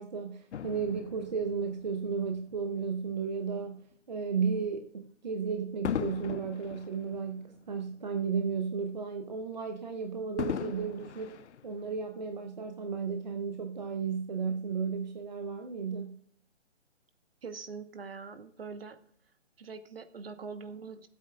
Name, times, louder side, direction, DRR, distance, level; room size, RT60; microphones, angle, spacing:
voice 1, 0.0-3.8 4.1-11.4 11.6-16.1, right 5 dB, 40° right, 5 dB, 0.7 m, -34 dB
Fireworks, 0.5-3.1 3.8-4.0 5.8-8.4 8.7-8.8 10.4-12.3 13.0-13.1, left 8 dB, 70° left, 0.5 m, -39 dB
voice 2, 17.4-19.0 19.6-21.1, right 5 dB, 55° right, 10 dB, 1.1 m, -43 dB
23.5 x 8.4 x 2.4 m, 0.63 s
hypercardioid pair, 160°, 36 cm